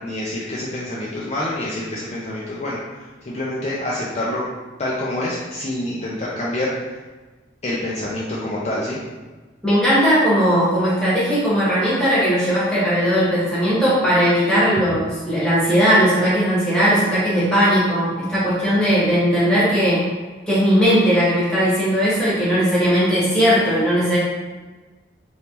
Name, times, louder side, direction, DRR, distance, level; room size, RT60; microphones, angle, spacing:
voice 1, 0.0-2.8 3.3-4.4 4.8-6.7 7.6-9.0, left 1 dB, 35° left, -6 dB, 0.5 m, -26 dB
voice 2, 9.6-20.0 20.5-24.2, equal, 5° left, -10 dB, 1.3 m, -18 dB
3.4 x 3.1 x 2.8 m, 1.3 s
head